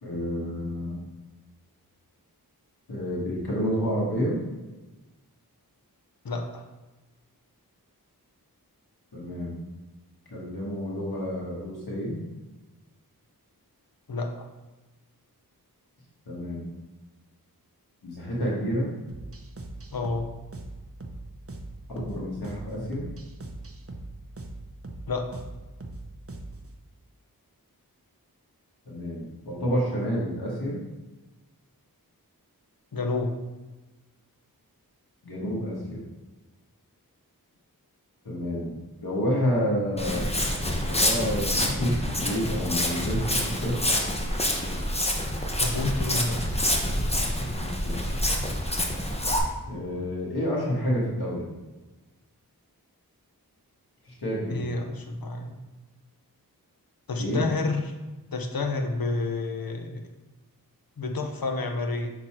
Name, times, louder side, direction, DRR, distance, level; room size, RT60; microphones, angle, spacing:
voice 1, 0.0-1.0 2.9-4.4 9.1-9.6 10.3-12.2 16.3-16.7 18.0-18.9 21.9-23.0 28.8-30.8 35.2-36.0 38.2-40.3 40.8-43.8 47.4-48.1 49.7-51.5 54.1-54.7 57.2-57.4, equal, 85° left, -5 dB, 1.6 m, -29 dB
voice 2, 6.2-6.6 14.1-14.5 19.9-20.3 25.1-25.4 32.9-33.3 45.6-46.4 54.5-55.6 57.1-57.9 58.3-60.0 61.0-62.1, left 3 dB, 65° left, 4 dB, 0.9 m, -29 dB
sound 1, 19.1-26.7, right 2 dB, 35° right, 0.8 m, -41 dB
Walk footsteps, 40.0-49.4, left 1 dB, 15° left, 1.0 m, -27 dB
6.1 x 4.0 x 4.4 m, 1.1 s
wide cardioid pair, 40°, 37 cm